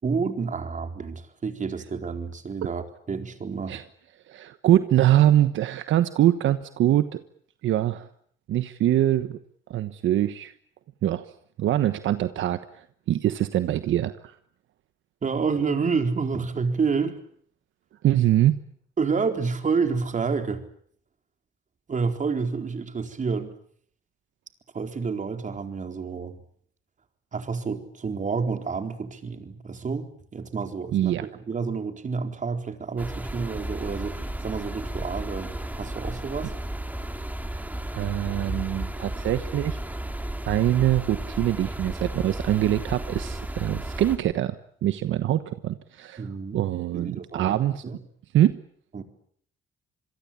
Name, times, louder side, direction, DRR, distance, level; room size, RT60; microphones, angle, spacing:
voice 1, 0.0-3.8 15.2-17.2 19.0-20.6 21.9-23.6 24.7-26.4 27.3-36.5 46.2-46.6 46.9-47.6 47.8-48.0 48.9-49.0, right 5 dB, 40° right, 6 dB, 4.2 m, -29 dB
voice 2, 4.3-7.2 7.6-8.1 8.5-9.4 9.7-10.5 11.0-11.3 11.6-14.3 18.0-18.6 30.9-31.2 37.9-39.8 40.4-46.2 46.5-47.8 48.3-48.5, right 12 dB, 75° right, 11 dB, 1.3 m, -23 dB
sound 1, 33.0-44.2, right 1 dB, 10° right, 3.6 m, -33 dB
26.5 x 22.5 x 8.8 m, 0.62 s
cardioid pair, 90°, 20 cm